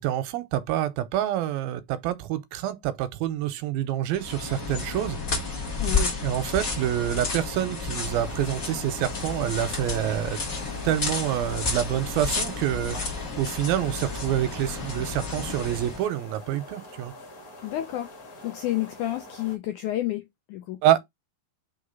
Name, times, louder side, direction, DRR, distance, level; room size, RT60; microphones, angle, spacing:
voice 1, 0.0-5.2 6.2-10.4 10.8-13.0 13.4-17.1 20.8-21.0, right 12 dB, 85° right, 2.5 m, -27 dB
sound 1, 4.1-16.0, left 4 dB, 50° left, 1.0 m, -31 dB
voice 2, 5.8-6.1 17.6-18.1 18.4-20.8, left 14 dB, 85° left, 1.7 m, -30 dB
sound 2, 8.0-19.6, left 1 dB, 30° left, 1.8 m, -45 dB
5.7 x 3.6 x 5.4 m
omnidirectional pair, 4.2 m